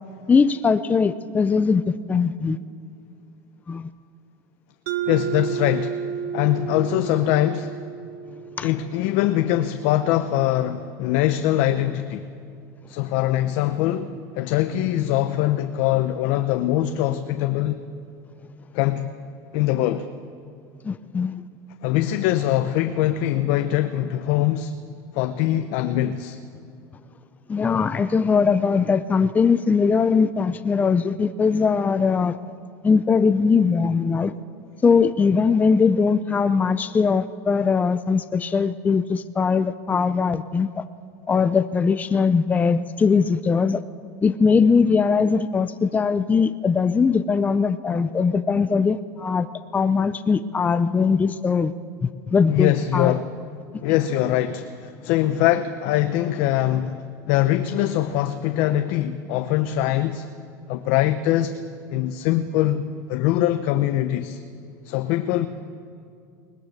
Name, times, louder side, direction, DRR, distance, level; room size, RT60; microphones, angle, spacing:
voice 1, 0.3-2.6 3.7-3.9 8.6-8.7 20.8-21.4 27.5-32.3 32.8-34.3 34.8-40.8 41.3-43.8 44.2-49.5 49.7-51.7 52.0-53.2, left 5 dB, 15° left, 12 dB, 0.6 m, -20 dB
Mallet percussion, 4.9-9.4, right 7 dB, 70° right, 1.4 m, -31 dB
voice 2, 5.1-6.0 6.3-7.7 8.6-12.3 12.9-17.8 18.7-19.1 19.5-20.1 21.8-24.7 25.1-26.4 52.5-53.3 53.8-60.2 60.7-61.6 61.9-64.4 64.8-65.5, left 13 dB, 65° left, 9 dB, 1.0 m, -22 dB
22.5 x 20.5 x 6.7 m, 2.5 s
supercardioid pair, 130°, 9 cm